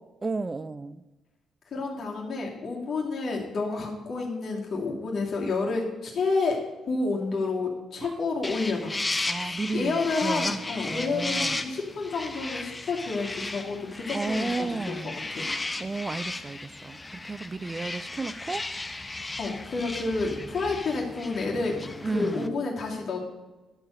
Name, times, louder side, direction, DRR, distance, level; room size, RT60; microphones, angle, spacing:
voice 1, 0.2-1.0 8.0-8.2 9.3-11.7 14.1-15.2 15.4-18.6 22.0-22.6, right 3 dB, 25° right, 15 dB, 0.4 m, -33 dB
voice 2, 1.7-6.6 6.9-9.0 9.4-15.0 15.3-15.5 19.4-21.8 22.1-23.2, left 3 dB, 55° left, -1 dB, 2.7 m, -29 dB
sound 1, 8.4-22.5, left 2 dB, 20° left, 0.7 m, -35 dB
12.0 x 4.6 x 8.1 m, 1.1 s
cardioid pair, 90°, 0 cm